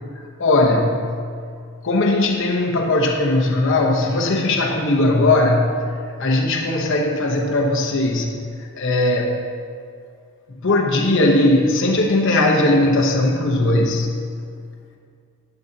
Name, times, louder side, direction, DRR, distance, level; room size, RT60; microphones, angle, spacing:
voice 1, 0.4-1.3 1.8-9.5 10.6-14.2, left 2 dB, 60° left, 1 dB, 0.9 m, -19 dB
12.0 x 9.4 x 2.8 m, 2.2 s
head